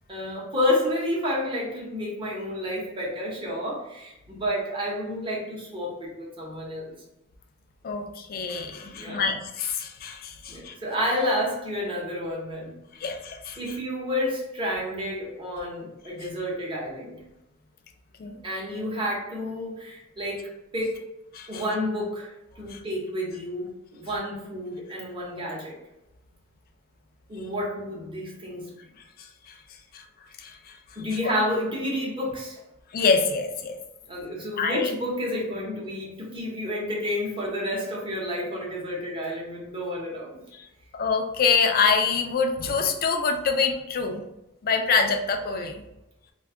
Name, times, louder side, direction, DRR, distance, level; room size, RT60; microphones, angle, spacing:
voice 1, 0.1-6.9 8.9-9.3 10.5-12.8 13.6-17.2 18.3-21.0 21.5-25.8 27.3-28.7 31.0-32.6 34.1-40.4, left 1 dB, 25° right, -4 dB, 0.8 m, -30 dB
voice 2, 7.8-10.7 12.9-13.6 18.2-18.3 21.3-21.6 22.7-22.8 29.2-29.6 29.9-30.0 30.4-30.8 31.2-31.3 32.9-33.8 34.6-34.9 40.6-40.7 40.9-44.2 44.6-45.8, left 5 dB, 45° left, 5 dB, 0.4 m, -26 dB
2.5 x 2.3 x 3.5 m, 0.91 s
head